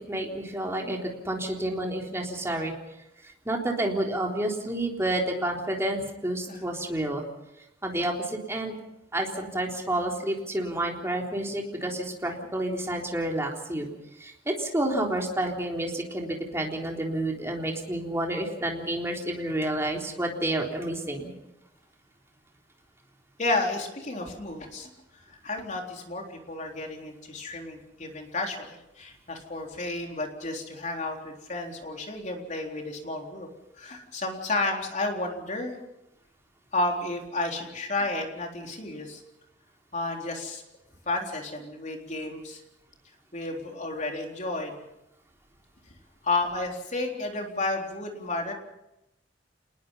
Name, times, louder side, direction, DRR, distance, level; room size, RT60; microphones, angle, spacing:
voice 1, 0.0-2.7 3.5-7.2 7.8-8.7 9.1-13.9 14.2-21.3, right 1 dB, 15° right, 0 dB, 3.8 m, -29 dB
voice 2, 23.4-24.9 25.3-33.5 33.8-35.7 36.7-39.2 39.9-40.6 41.1-42.6 43.3-44.8 46.2-48.5, left 2 dB, 40° left, 2 dB, 3.9 m, -32 dB
27.5 x 20.5 x 5.7 m, 0.89 s
head